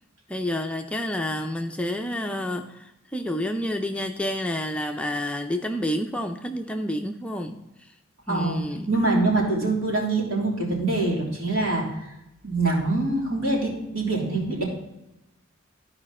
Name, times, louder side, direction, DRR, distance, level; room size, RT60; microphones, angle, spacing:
voice 1, 0.3-7.6 8.3-8.9, left 1 dB, 5° left, 4 dB, 0.5 m, -29 dB
voice 2, 8.3-8.6 8.9-11.8 12.4-14.6, right 2 dB, 75° right, -3 dB, 3.4 m, -24 dB
13.5 x 4.9 x 4.3 m, 0.93 s
head